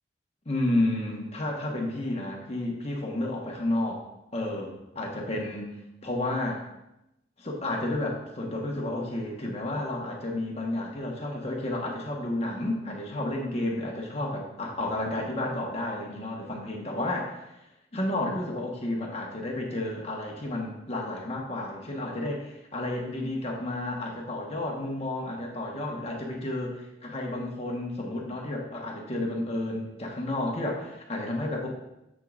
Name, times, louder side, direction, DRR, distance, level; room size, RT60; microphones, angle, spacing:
voice 1, 0.4-4.0 4.3-5.8 6.0-6.6 7.4-17.3 17.9-31.7, left 1 dB, 35° left, -1 dB, 1.3 m, -31 dB
7.6 x 7.5 x 2.5 m, 0.88 s
head